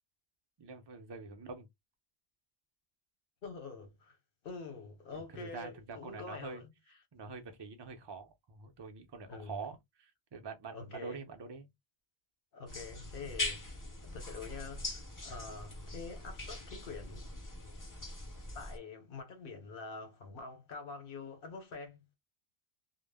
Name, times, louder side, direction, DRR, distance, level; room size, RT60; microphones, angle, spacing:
voice 1, 0.6-1.7 5.1-6.6 7.1-11.7, right 4 dB, 35° right, 0.4 m, -46 dB
voice 2, 3.4-4.2 4.4-6.7 9.3-9.6 10.7-11.2 12.5-13.6 14.0-17.3 18.5-22.1, left 4 dB, 60° left, 0.9 m, -46 dB
sound 1, 12.7-18.8, left 2 dB, 25° left, 0.5 m, -42 dB
2.1 x 2.0 x 3.3 m
omnidirectional pair, 1.1 m